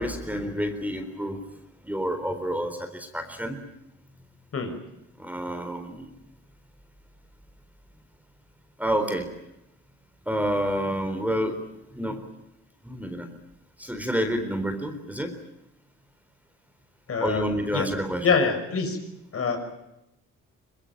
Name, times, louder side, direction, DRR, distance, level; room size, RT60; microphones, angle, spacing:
voice 1, 0.0-1.4 1.8-3.6 5.2-6.1 8.8-9.3 10.3-11.6 11.9-12.2 12.8-13.3 13.8-15.4 17.2-18.4, equal, 5° right, 6 dB, 4.1 m, -29 dB
voice 2, 17.1-17.4 17.7-17.9 18.2-19.0 19.3-19.6, left 5 dB, 50° left, 6 dB, 5.8 m, -24 dB
23.0 x 21.5 x 9.1 m, 0.88 s
cardioid pair, 90°, 30 cm